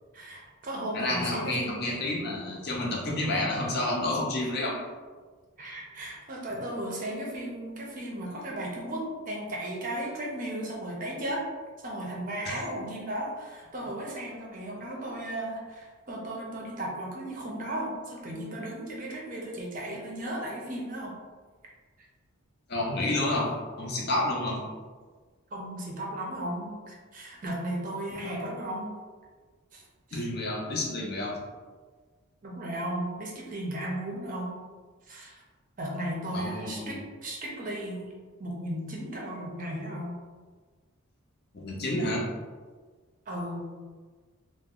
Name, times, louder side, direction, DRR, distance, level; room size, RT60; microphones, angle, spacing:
voice 1, 0.1-1.8 5.6-11.5 11.8-21.1 25.5-29.0 29.7-29.8 30.1-30.2 32.4-34.6 35.1-35.4 35.8-38.1 38.4-40.1 43.3-43.7, right 1 dB, 35° right, -2 dB, 0.5 m, -35 dB
voice 2, 0.9-4.7 12.5-12.6 22.7-23.5 23.8-24.6 30.1-31.4 36.3-37.0 41.5-42.2, left 1 dB, 45° left, -3 dB, 0.6 m, -29 dB
2.9 x 2.0 x 3.7 m, 1.4 s
head